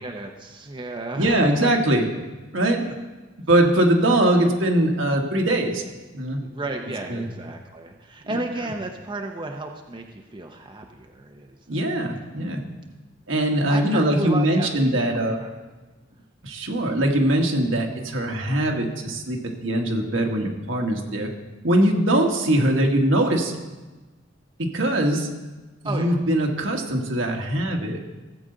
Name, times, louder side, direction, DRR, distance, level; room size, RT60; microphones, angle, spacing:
voice 1, 0.0-1.7 6.4-11.6 12.1-12.2 13.7-14.8 15.1-15.5 25.8-26.2, right 2 dB, 25° right, 2 dB, 0.8 m, -33 dB
voice 2, 1.2-2.0 2.5-2.8 3.5-5.8 6.1-6.4 7.1-7.3 8.2-8.4 11.7-12.6 13.3-15.4 16.4-21.3 21.6-23.5 24.6-25.3 25.8-28.0, right 1 dB, 75° right, 2 dB, 1.6 m, -21 dB
17.0 x 7.8 x 3.9 m, 1.2 s
head